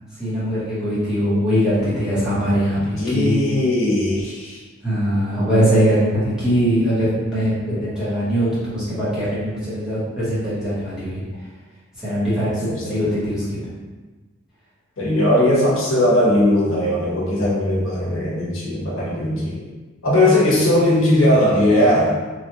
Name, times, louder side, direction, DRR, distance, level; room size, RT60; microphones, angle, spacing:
voice 1, 0.2-3.4 4.8-11.2 12.0-13.7, equal, 5° right, -12 dB, 1.1 m, -21 dB
voice 2, 3.0-4.6 12.9-13.0 15.0-19.6 20.0-22.2, left 1 dB, 70° left, -6 dB, 0.9 m, -18 dB
3.2 x 2.4 x 2.8 m, 1.3 s
head